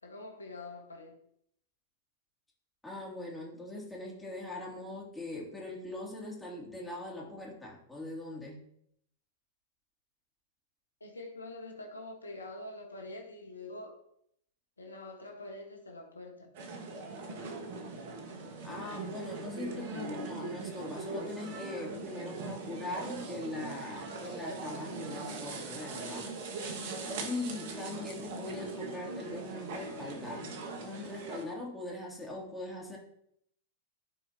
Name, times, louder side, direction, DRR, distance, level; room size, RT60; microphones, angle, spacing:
voice 1, 0.0-1.2 11.0-14.0 14.8-16.5, left 2 dB, 85° left, 2 dB, 1.5 m, -45 dB
voice 2, 2.8-8.6 18.6-26.3 27.2-30.5 30.8-33.0, left 2 dB, 5° left, -4 dB, 3.1 m, -41 dB
sound 1, 16.5-31.4, right 3 dB, 55° right, 1.6 m, -41 dB
14.5 x 4.8 x 2.9 m, 0.72 s
figure-of-eight pair, 100°, 0 cm